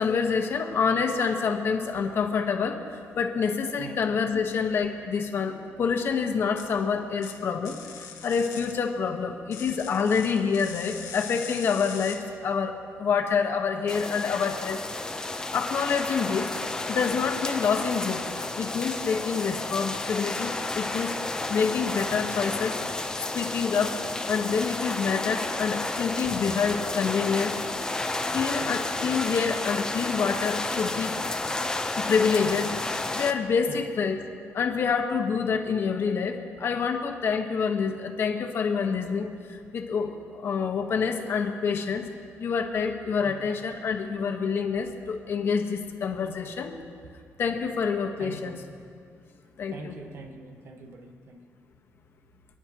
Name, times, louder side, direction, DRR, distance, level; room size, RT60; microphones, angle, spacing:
voice 1, 0.0-12.7 13.0-14.8 15.5-16.5 16.9-18.2 18.6-21.1 21.5-23.9 24.3-27.5 28.3-31.1 32.0-32.7 33.1-34.2 34.5-42.0 42.4-46.7 47.4-48.6 49.6-49.9, left 6 dB, 50° left, 4 dB, 1.3 m, -27 dB
sound 1, 6.6-6.7 7.2-7.3 7.6-8.7 9.5-12.2, left 7 dB, 85° left, 1.8 m, -41 dB
sound 2, 13.9-33.3, left 2 dB, 15° left, 0.7 m, -31 dB
voice 2, 48.2-48.6 49.7-51.4, right 3 dB, 55° right, 4 dB, 1.3 m, -43 dB
28.5 x 9.9 x 3.0 m, 2.3 s
cardioid pair, 125°, 5 cm